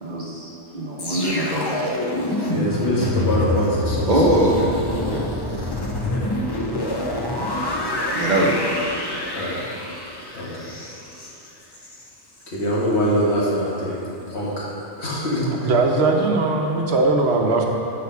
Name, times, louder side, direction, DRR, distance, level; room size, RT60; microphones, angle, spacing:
voice 1, 0.0-1.9 4.0-5.3 7.7-8.7, right 1 dB, 40° right, -4 dB, 1.0 m, -22 dB
sound 1, 1.0-12.1 12.4-12.6, left 1 dB, 25° left, 0.8 m, -27 dB
voice 2, 2.5-4.2 6.1-6.2 9.3-9.5 10.3-10.7 12.5-14.7 15.0-15.5, equal, 65° left, -5 dB, 1.8 m, -23 dB
voice 3, 15.6-17.6, right 3 dB, 65° right, 1 dB, 1.1 m, -19 dB
8.2 x 5.7 x 5.8 m, 3.0 s
omnidirectional pair, 1.2 m